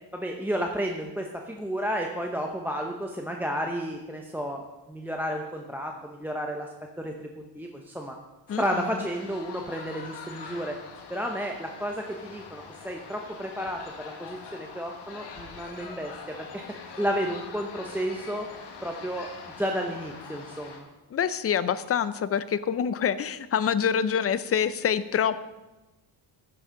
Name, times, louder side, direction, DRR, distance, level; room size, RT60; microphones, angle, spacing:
voice 1, 0.1-6.7 7.0-8.2 8.6-10.8 11.1-16.6 17.0-18.5 18.8-19.3 19.6-20.9, equal, 5° right, 2 dB, 0.7 m, -32 dB
sound 1, 8.5-20.8, left 5 dB, 75° left, 1.8 m, -44 dB
voice 2, 8.5-8.9 21.1-25.4, left 8 dB, 35° left, 15 dB, 0.5 m, -26 dB
13.5 x 9.8 x 3.8 m, 1.1 s
cardioid pair, 125°, 42 cm